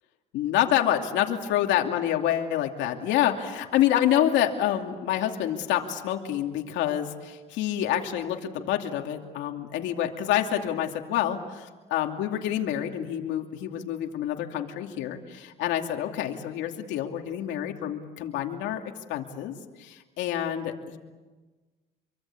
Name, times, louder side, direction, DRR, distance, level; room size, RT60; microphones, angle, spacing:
voice 1, 0.3-18.8 19.1-19.6 19.8-21.0, left 11 dB, 85° left, 3 dB, 2.6 m, -27 dB
27.0 x 24.0 x 8.5 m, 1.3 s
cardioid pair, 115°, 19 cm